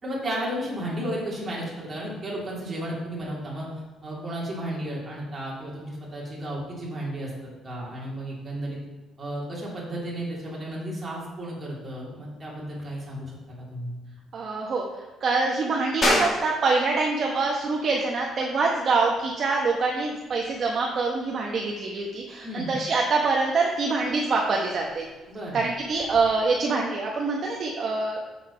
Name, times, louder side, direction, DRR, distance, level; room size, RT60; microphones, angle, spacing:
voice 1, 0.0-3.7 4.0-7.3 7.6-8.8 9.2-13.9 22.4-22.7 25.3-25.6, right 1 dB, 25° right, -5 dB, 2.8 m, -33 dB
voice 2, 14.3-14.8 15.2-25.1 25.5-28.2, right 3 dB, 40° right, -1 dB, 0.9 m, -25 dB
sound 1, 16.0-26.2, left 1 dB, 30° left, 2.1 m, -34 dB
6.9 x 5.7 x 5.6 m, 1.3 s
cardioid pair, 145°, 0 cm